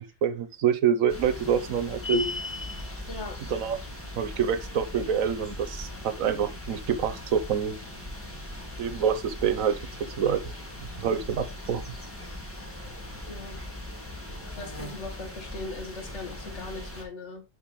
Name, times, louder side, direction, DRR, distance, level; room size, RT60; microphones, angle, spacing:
voice 1, 0.0-2.3 3.5-3.8 4.2-7.8 8.8-9.8 10.2-10.4 10.8-11.8, right 8 dB, 90° right, 1.3 m, -26 dB
sound 1, 1.1-17.0, left 1 dB, 10° left, 1.7 m, -40 dB
sound 2, 2.0-2.9, left 3 dB, 30° left, 0.4 m, -29 dB
voice 2, 3.1-3.4 13.3-13.6 14.6-17.4, left 3 dB, 60° left, 1.9 m, -39 dB
6.8 x 6.1 x 3.1 m
omnidirectional pair, 1.4 m